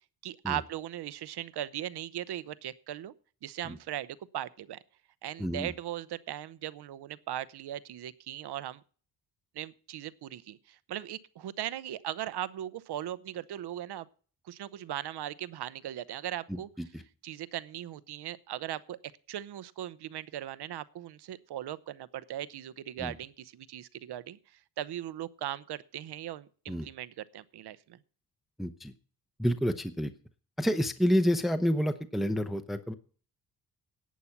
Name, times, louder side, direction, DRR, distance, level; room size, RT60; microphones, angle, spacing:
voice 1, 0.2-3.1 3.4-4.8 5.2-8.8 9.5-14.1 14.5-16.7 17.2-19.0 19.3-24.4 24.8-28.0, right 12 dB, 70° right, 17 dB, 0.8 m, -38 dB
voice 2, 5.4-5.7 16.5-16.6 16.9-17.0 23.0-23.1 26.7-26.9 28.6-28.9 29.4-30.1 30.6-32.9, equal, ahead, 8 dB, 0.8 m, -29 dB
11.5 x 8.5 x 5.9 m, 0.42 s
cardioid pair, 80°, 41 cm